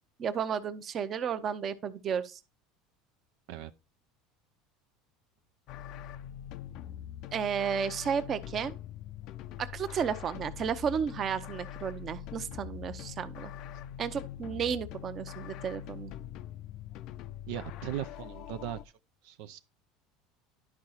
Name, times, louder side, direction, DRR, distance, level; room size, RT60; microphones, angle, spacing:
voice 1, 0.2-2.4 7.3-8.7 9.6-13.5 14.0-16.1, right 7 dB, 40° right, 0.9 m, -33 dB
sound 1, 5.7-18.8, left 10 dB, 60° left, 0.5 m, -43 dB
voice 2, 17.5-18.8 19.2-19.6, right 11 dB, 75° right, 0.6 m, -38 dB
11.0 x 4.8 x 4.2 m
supercardioid pair, 115°, 0 cm